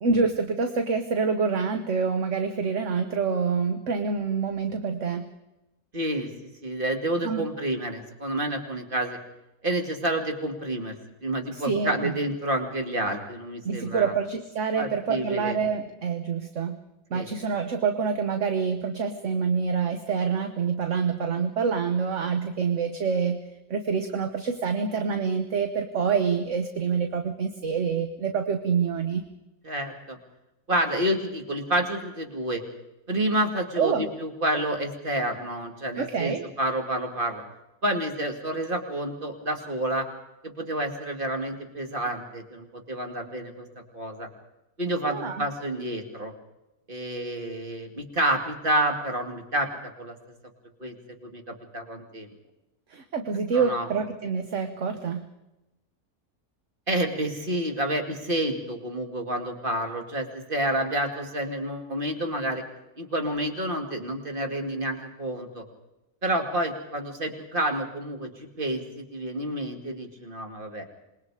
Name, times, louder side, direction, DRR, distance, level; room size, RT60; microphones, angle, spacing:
voice 1, 0.0-5.3 7.2-7.4 11.5-12.1 13.6-16.8 17.1-23.4 23.7-29.2 33.8-34.1 36.0-36.4 45.0-45.4 52.9-55.3, right 5 dB, 55° right, 7 dB, 1.4 m, -26 dB
voice 2, 5.9-6.3 6.6-9.2 9.6-10.9 11.2-14.1 14.7-15.6 17.1-17.3 29.6-30.2 30.7-32.6 33.1-37.4 37.8-40.1 40.4-43.7 43.9-44.3 44.8-46.3 46.9-49.7 50.0-50.2 50.8-50.9 51.2-52.3 53.5-53.9 56.9-62.6 63.0-65.6 66.2-70.8, right 1 dB, 35° right, 4 dB, 2.7 m, -29 dB
27.0 x 20.5 x 4.9 m, 0.94 s
omnidirectional pair, 1.6 m